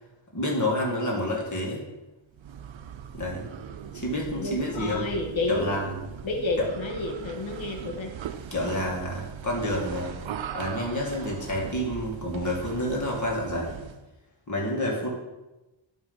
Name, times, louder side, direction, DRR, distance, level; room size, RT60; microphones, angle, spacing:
voice 1, 0.3-1.8 3.1-3.5 3.9-5.1 5.5-6.0 6.6-6.7 8.5-10.1 10.5-13.8 14.5-15.1, left 1 dB, 40° left, -2 dB, 2.1 m, -29 dB
sound 1, 2.3-14.1, right 8 dB, 75° right, 0.6 m, -39 dB
voice 2, 4.4-5.7 6.2-8.1, left 2 dB, 75° left, 2 dB, 1.6 m, -30 dB
11.0 x 3.6 x 5.4 m, 1.0 s
wide cardioid pair, 110°, 46 cm